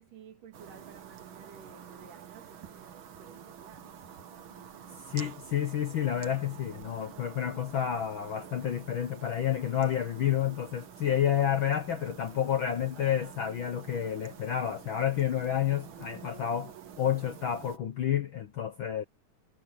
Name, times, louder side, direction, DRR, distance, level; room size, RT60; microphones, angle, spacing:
voice 1, 0.0-4.3, right 7 dB, 85° right, 4.3 m, -53 dB
sound 1, 0.5-17.8, right 8 dB, 50° right, 1.8 m, -48 dB
voice 2, 5.1-19.0, left 10 dB, 70° left, 1.1 m, -30 dB
omnidirectional pair, 3.6 m